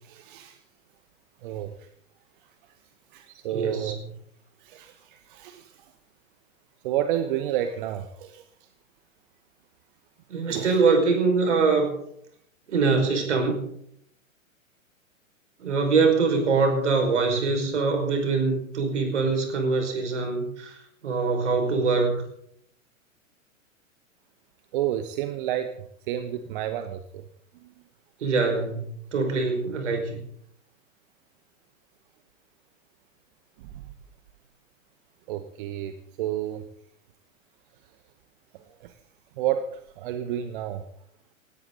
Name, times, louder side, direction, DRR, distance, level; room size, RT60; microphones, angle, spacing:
voice 1, 0.0-0.6 1.4-1.9 3.1-4.0 4.6-5.8 6.8-8.4 10.5-10.8 24.7-27.2 27.6-27.7 33.6-33.8 35.3-36.7 38.8-38.9 39.4-40.8, right 11 dB, 40° right, 9 dB, 1.1 m, -31 dB
voice 2, 3.5-3.9 10.3-11.9 12.7-13.6 15.6-20.8 21.0-22.2 28.2-30.2, right 4 dB, 60° right, 4 dB, 5.4 m, -23 dB
18.5 x 17.0 x 4.0 m, 0.68 s
figure-of-eight pair, 105°, 40 cm